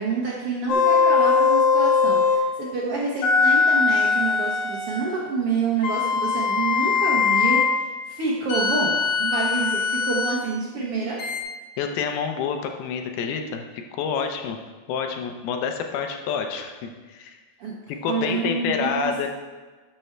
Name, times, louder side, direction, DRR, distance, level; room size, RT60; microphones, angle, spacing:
voice 1, 0.0-11.2 17.6-17.7 18.1-19.3, right 4 dB, 80° right, -3 dB, 1.2 m, -28 dB
sound 1, 0.7-2.5 3.2-5.1 5.8-7.8 8.5-10.4 11.2-11.4, left 5 dB, 60° left, 2.4 m, -21 dB
voice 2, 11.8-14.6 14.9-17.4 17.9-19.3, left 6 dB, 85° left, 4 dB, 2.8 m, -28 dB
12.0 x 6.2 x 4.5 m, 1.3 s
omnidirectional pair, 4.3 m